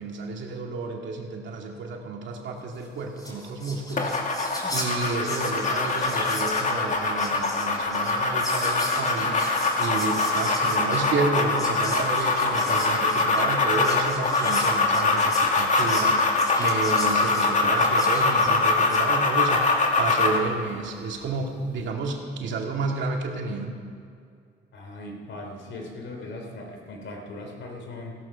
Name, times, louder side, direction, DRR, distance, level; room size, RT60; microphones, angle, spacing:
voice 1, 0.0-4.1 4.7-23.8, right 3 dB, 70° right, 1 dB, 2.3 m, -31 dB
Whispering, 2.8-2.9 3.1-19.1, left 1 dB, 20° left, 3.5 m, -38 dB
sound 1, 4.0-20.5, left 3 dB, 40° left, 2.1 m, -23 dB
voice 2, 24.7-28.1, left 2 dB, 70° left, 2 dB, 3.3 m, -39 dB
16.0 x 13.5 x 5.7 m, 2.3 s
cardioid pair, 90°, 20 cm